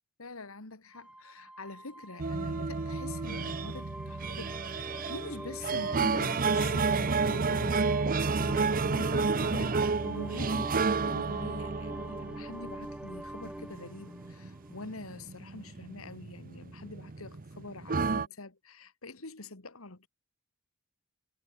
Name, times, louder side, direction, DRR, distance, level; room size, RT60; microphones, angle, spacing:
voice 1, 0.2-20.1, left 2 dB, 80° left, 2.3 m, -45 dB
sound 1, 0.9-15.3, right 1 dB, 5° right, 0.5 m, -44 dB
sound 2, 2.2-18.3, right 4 dB, 45° right, 0.8 m, -31 dB
head